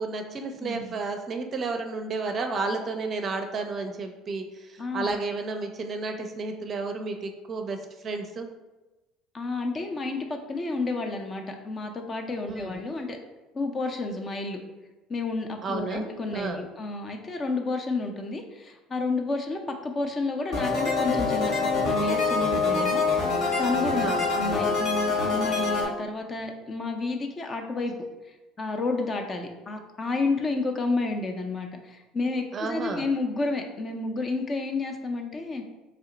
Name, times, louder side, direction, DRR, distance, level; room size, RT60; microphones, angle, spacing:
voice 1, 0.0-8.5 12.4-12.8 15.6-16.1 16.3-16.7 23.9-24.3 32.5-33.0, right 3 dB, 40° right, 5 dB, 0.5 m, -32 dB
voice 2, 0.6-0.9 4.8-5.1 9.3-13.2 13.5-14.6 15.1-23.0 23.6-27.9 28.6-35.6, left 3 dB, 30° left, 4 dB, 0.5 m, -30 dB
sound 1, 20.5-25.8, left 4 dB, 55° left, 1.1 m, -25 dB
3.3 x 2.8 x 3.9 m, 1.1 s
hypercardioid pair, 65°, 0 cm